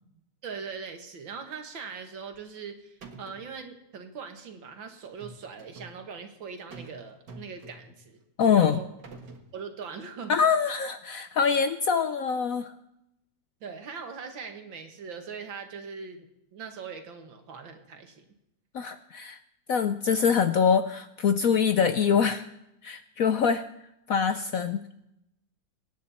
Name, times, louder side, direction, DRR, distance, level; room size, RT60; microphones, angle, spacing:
voice 1, 0.4-8.2 8.6-8.9 9.5-10.4 13.6-18.2, right 5 dB, 85° right, 6 dB, 2.5 m, -41 dB
sound 1, 2.3-2.7 3.0-3.5 5.0-6.0 6.7-7.0 7.3-8.0 8.7-9.5, right 3 dB, 65° right, 2.3 m, -46 dB
voice 2, 8.4-8.8 10.3-12.7 18.7-19.4 19.7-22.4 22.8-23.6 24.1-24.8, left 6 dB, 70° left, 10 dB, 0.8 m, -24 dB
23.5 x 10.0 x 4.3 m, 0.84 s
omnidirectional pair, 2.1 m